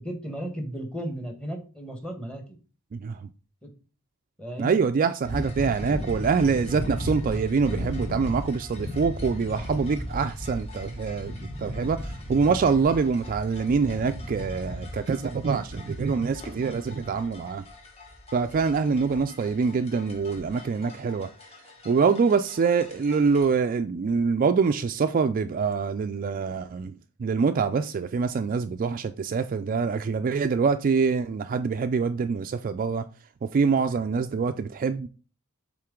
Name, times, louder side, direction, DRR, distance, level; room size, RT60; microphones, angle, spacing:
voice 1, 0.0-2.6 3.6-3.7 4.4-4.8, right 1 dB, 5° left, 1.3 m, -35 dB
voice 2, 2.9-3.3 4.6-17.6 18.3-21.3 21.9-26.9 27.2-33.0 33.5-35.1, right 5 dB, 40° right, 0.3 m, -25 dB
sound 1, 5.2-23.5, equal, 30° left, 1.3 m, -37 dB
7.7 x 3.7 x 3.7 m
head